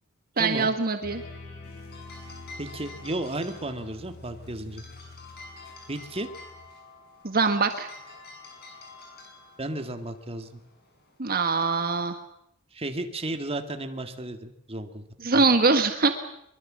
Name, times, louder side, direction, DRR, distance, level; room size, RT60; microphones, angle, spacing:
voice 1, 0.4-1.2 7.2-7.9 11.2-12.2 15.2-16.1, right 4 dB, 45° right, 7 dB, 1.5 m, -23 dB
sound 1, 1.0-6.7, left 3 dB, 70° left, 6.9 m, -46 dB
sound 2, 1.6-12.0, left 3 dB, 50° left, 7.9 m, -49 dB
voice 2, 2.6-4.8 5.9-6.3 9.6-10.6 12.7-15.0 15.3-15.5, right 1 dB, 30° right, 7 dB, 1.9 m, -33 dB
23.5 x 22.5 x 7.5 m, 0.76 s
head